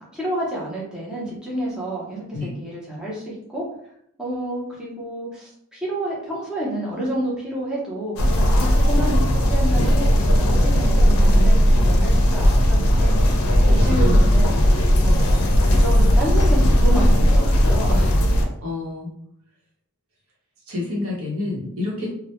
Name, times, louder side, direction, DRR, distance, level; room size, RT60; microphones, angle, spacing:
voice 1, 0.1-3.7 4.2-13.1 13.7-14.6 15.0-18.2, right 1 dB, 5° right, -6 dB, 0.6 m, -29 dB
sound 1, 8.2-18.4, equal, 85° left, 0.4 m, -16 dB
voice 2, 13.8-14.1 14.9-15.1 18.6-19.1 20.7-22.1, left 2 dB, 80° right, -3 dB, 0.8 m, -28 dB
2.1 x 2.0 x 2.9 m, 0.72 s
head